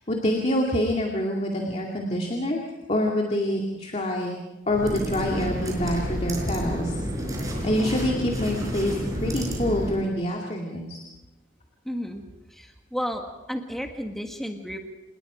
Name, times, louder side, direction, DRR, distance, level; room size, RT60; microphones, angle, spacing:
voice 1, 0.1-4.4 4.7-6.9 7.6-11.0, left 1 dB, 35° left, 0 dB, 2.4 m, -26 dB
sound 1, 4.7-10.1, equal, 20° right, 5.2 m, -30 dB
voice 2, 11.8-12.2 12.5-14.8, equal, ahead, 3 dB, 1.7 m, -32 dB
27.5 x 20.5 x 5.1 m, 1.0 s
head